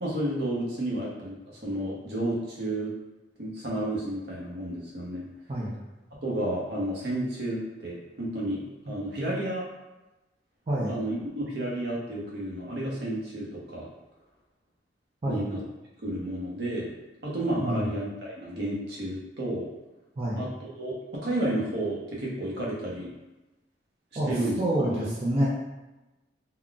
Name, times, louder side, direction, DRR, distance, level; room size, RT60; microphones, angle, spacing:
voice 1, 0.0-2.9 3.4-5.2 6.2-9.7 10.9-13.9 15.3-15.6 16.0-16.9 17.2-19.7 20.4-23.1 24.2-25.1, right 1 dB, 70° right, -4 dB, 0.8 m, -31 dB
voice 2, 20.2-20.5 24.2-24.3 24.6-25.5, right 1 dB, 35° right, -6 dB, 0.5 m, -27 dB
3.7 x 2.2 x 2.3 m, 1.0 s
head